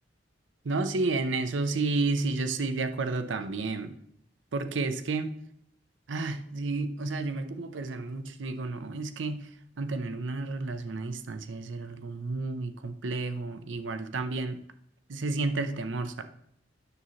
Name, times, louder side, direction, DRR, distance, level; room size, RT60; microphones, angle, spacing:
voice 1, 0.6-3.9 4.5-5.3 6.1-9.5 9.8-14.6 15.1-16.2, right 3 dB, 85° right, 9 dB, 0.7 m, -31 dB
9.5 x 7.0 x 3.1 m, 0.70 s
head